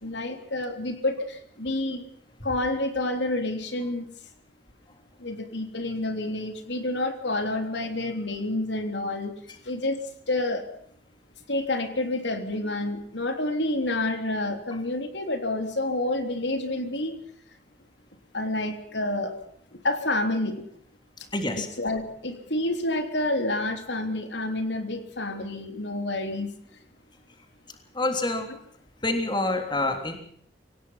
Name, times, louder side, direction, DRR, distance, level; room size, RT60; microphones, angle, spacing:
voice 1, 0.0-2.1 2.4-4.1 5.2-9.3 9.6-10.0 10.3-10.7 11.5-17.2 18.3-19.3 19.7-20.6 21.8-26.5, left 2 dB, 70° left, 7 dB, 3.4 m, -28 dB
voice 2, 21.3-21.7 27.9-28.5 29.0-30.2, left 2 dB, 25° left, 5 dB, 3.4 m, -27 dB
26.0 x 18.0 x 5.8 m, 0.65 s
head